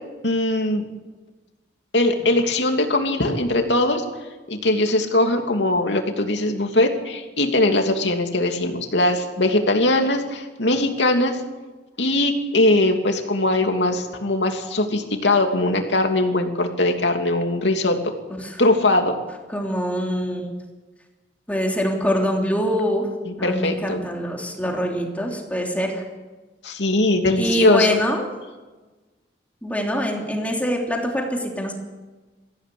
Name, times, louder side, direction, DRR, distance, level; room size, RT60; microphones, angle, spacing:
voice 1, 0.2-0.8 1.9-4.0 4.5-11.4 12.0-18.1 18.6-19.2 23.2-24.0 26.6-27.9, left 2 dB, 90° left, 4 dB, 2.8 m, -20 dB
voice 2, 19.5-20.5 21.5-23.1 23.4-26.0 27.3-28.2 29.6-31.7, equal, 10° left, 0 dB, 3.3 m, -24 dB
22.0 x 16.0 x 8.6 m, 1.2 s
head